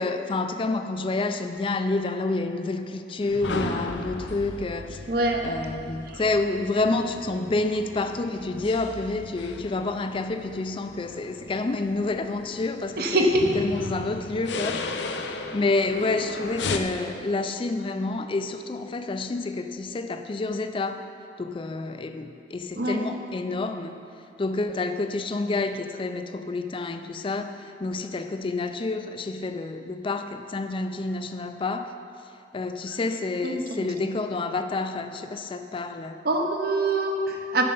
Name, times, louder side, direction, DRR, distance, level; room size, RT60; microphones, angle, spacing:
voice 1, 0.0-5.0 5.4-14.8 15.1-21.0 21.4-24.0 24.4-31.9 32.5-36.2, left 3 dB, 30° left, 8 dB, 0.4 m, -29 dB
sound 1, 3.2-16.8, left 3 dB, 80° left, 0.6 m, -36 dB
voice 2, 5.1-5.5 6.1-6.2 13.0-13.4 22.8-23.0 33.4-33.9 36.2-37.6, right 2 dB, 60° right, 3 dB, 0.9 m, -24 dB
9.0 x 6.6 x 5.5 m, 2.6 s
head